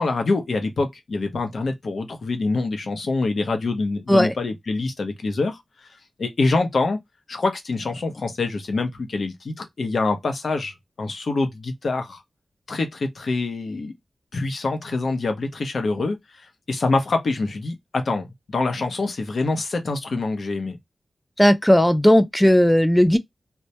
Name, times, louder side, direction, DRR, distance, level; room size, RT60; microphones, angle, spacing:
voice 1, 0.0-5.6 6.2-7.0 7.3-12.2 12.7-13.9 14.3-20.8, left 3 dB, 60° left, 0.6 m, -25 dB
voice 2, 21.4-23.2, equal, 5° left, 0.3 m, -16 dB
2.2 x 2.1 x 2.7 m
wide cardioid pair, 130°, 0 cm